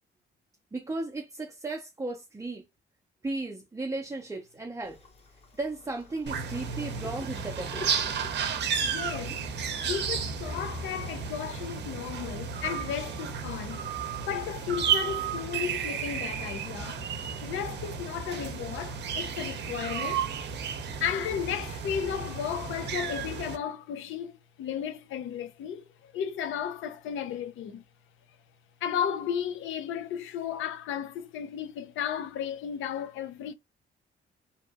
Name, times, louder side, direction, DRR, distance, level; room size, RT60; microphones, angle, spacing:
voice 1, 0.7-2.6 3.2-5.0 5.6-8.1, right 2 dB, 15° right, 0.5 m, -35 dB
sound 1, 4.8-10.2, left 3 dB, 30° left, 0.9 m, -49 dB
sound 2, 6.3-23.6, right 6 dB, 60° right, 0.6 m, -33 dB
voice 2, 8.8-9.4 9.8-13.8 14.1-17.0 17.4-20.3 21.0-24.3 24.6-27.8 28.8-33.5, left 8 dB, 80° left, 0.5 m, -34 dB
2.8 x 2.5 x 2.2 m
cardioid pair, 90°, 20 cm